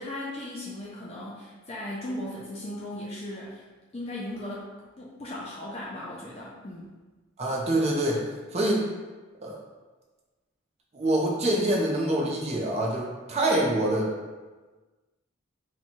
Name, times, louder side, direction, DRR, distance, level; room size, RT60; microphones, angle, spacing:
voice 1, 0.0-3.6 3.9-4.7 5.0-6.9, left 1 dB, 30° left, -5 dB, 0.4 m, -37 dB
voice 2, 7.4-8.2 8.5-8.9 9.4-9.6 10.9-14.1, right 1 dB, 30° right, -2 dB, 0.6 m, -25 dB
2.9 x 2.3 x 4.1 m, 1.3 s
head